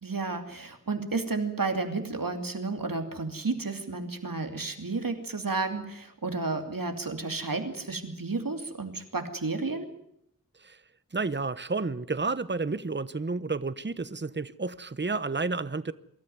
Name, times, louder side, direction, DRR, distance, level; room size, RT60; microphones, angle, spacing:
voice 1, 0.0-9.9, right 3 dB, 85° right, 2.8 m, -32 dB
voice 2, 11.1-15.9, right 3 dB, 35° right, 1.0 m, -31 dB
24.0 x 13.5 x 9.5 m
wide cardioid pair, 40°, 33 cm